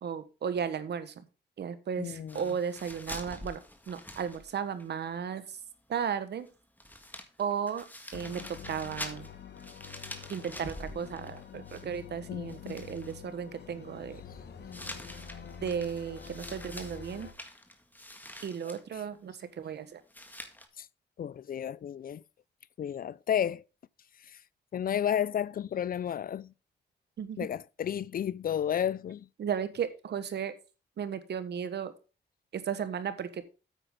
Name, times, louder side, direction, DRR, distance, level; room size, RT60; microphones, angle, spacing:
voice 1, 0.0-1.3 1.6-3.6 3.9-5.6 5.9-6.5 7.4-7.8 8.1-9.3 10.3-14.2 15.6-17.3 18.4-20.0 27.2-27.5 29.4-30.5 31.0-31.9 32.5-33.4, right 7 dB, 75° right, 1.3 m, -35 dB
voice 2, 2.0-2.4 12.3-12.8 20.8-20.9 21.2-22.2 22.8-23.6 24.3-24.4 24.7-26.5 27.4-29.3, left 9 dB, 55° left, 0.4 m, -32 dB
sound 1, 2.3-4.9 5.1-5.2 6.5-6.6 6.8-12.2 12.5-13.1 14.7-18.8 20.1-20.7, left 1 dB, 10° left, 1.8 m, -46 dB
sound 2, 8.1-17.3, left 7 dB, 70° left, 1.6 m, -47 dB
9.1 x 8.9 x 3.7 m
cardioid pair, 75°, 18 cm